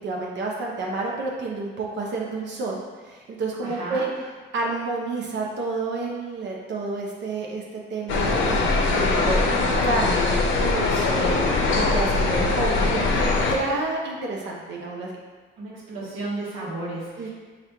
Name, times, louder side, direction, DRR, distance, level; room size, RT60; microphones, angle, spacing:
voice 1, 0.0-4.1 4.5-7.6 7.9-15.1 17.2-17.3, right 3 dB, 65° right, -2 dB, 0.7 m, -29 dB
voice 2, 3.6-4.1 15.6-17.3, right 2 dB, 85° right, -6 dB, 1.0 m, -33 dB
sound 1, 8.1-13.6, left 3 dB, 75° left, 0.6 m, -22 dB
4.4 x 2.5 x 3.3 m, 1.5 s
cardioid pair, 90°, 20 cm